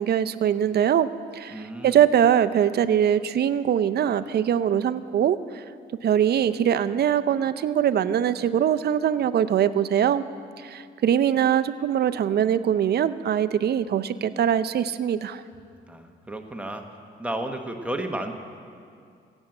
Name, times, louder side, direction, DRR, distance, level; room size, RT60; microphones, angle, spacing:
voice 1, 0.0-5.6 6.0-10.3 10.6-15.4, right 9 dB, 55° right, 13 dB, 0.6 m, -22 dB
voice 2, 1.5-2.0 15.9-16.8 17.2-18.3, right 1 dB, 5° right, 4 dB, 1.1 m, -32 dB
16.5 x 7.2 x 7.7 m, 2.3 s
cardioid pair, 90°, 20 cm